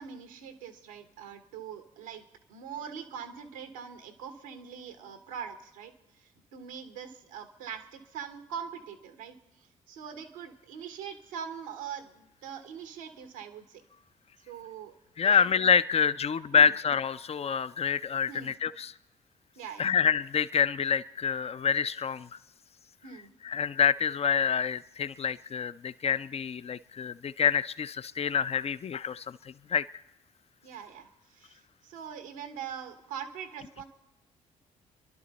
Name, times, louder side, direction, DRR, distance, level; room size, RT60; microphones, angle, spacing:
voice 1, 0.0-2.2 2.5-5.9 6.2-9.4 9.9-13.8 14.5-14.9 15.2-15.4 16.5-16.7 18.3-18.5 19.6-19.9 23.0-23.3 30.6-33.8, right 7 dB, 85° right, 9 dB, 1.1 m, -42 dB
voice 2, 15.2-18.9 19.8-22.3 23.4-29.4 29.7-29.8, left 7 dB, 35° left, 16 dB, 0.6 m, -27 dB
27.5 x 11.5 x 4.1 m, 0.91 s
hypercardioid pair, 45°, 17 cm